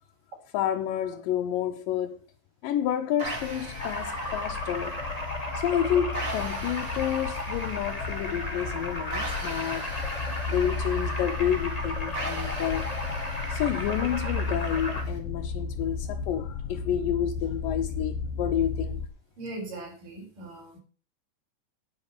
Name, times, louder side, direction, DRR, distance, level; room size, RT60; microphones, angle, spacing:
voice 1, 0.5-2.2 2.6-5.0 5.5-9.9 10.5-12.9 13.5-19.0, left 10 dB, 85° left, 2.6 m, -29 dB
sound 1, 3.2-15.2, right 2 dB, 25° right, 2.7 m, -41 dB
sound 2, 3.3-19.1, left 4 dB, 70° left, 2.7 m, -34 dB
sound 3, 3.8-15.0, left 1 dB, 10° left, 2.5 m, -35 dB
voice 2, 19.4-20.8, right 2 dB, 75° right, 7.3 m, -39 dB
9.7 x 9.6 x 6.0 m
omnidirectional pair, 3.8 m